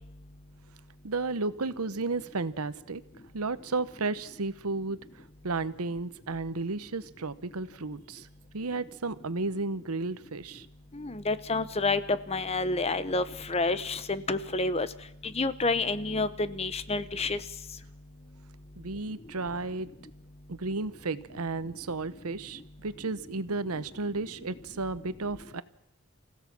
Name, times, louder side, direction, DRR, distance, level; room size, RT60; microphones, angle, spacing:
voice 1, 1.0-3.0 3.3-8.3 8.5-10.7 18.8-19.9 20.5-25.6, right 3 dB, 85° right, 15 dB, 1.0 m, -33 dB
voice 2, 10.9-14.9 15.3-17.4, left 3 dB, 30° left, 14 dB, 0.9 m, -29 dB
28.5 x 16.0 x 6.1 m, 0.83 s
head